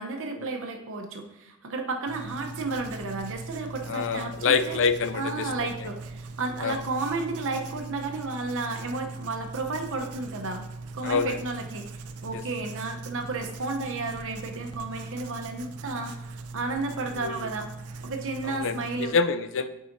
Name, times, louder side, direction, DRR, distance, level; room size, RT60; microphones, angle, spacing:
voice 1, 0.0-4.8 5.1-10.6 10.9-11.9 12.2-17.7 18.0-19.1, right 3 dB, 65° right, 3 dB, 0.8 m, -32 dB
Writing, 2.1-19.1, right 3 dB, 85° right, 0.5 m, -40 dB
voice 2, 3.9-5.5 6.6-6.8 11.0-11.4 12.3-12.4 17.1-17.4 18.4-19.7, left 5 dB, 60° left, 11 dB, 0.4 m, -26 dB
8.6 x 4.8 x 2.7 m, 0.86 s
head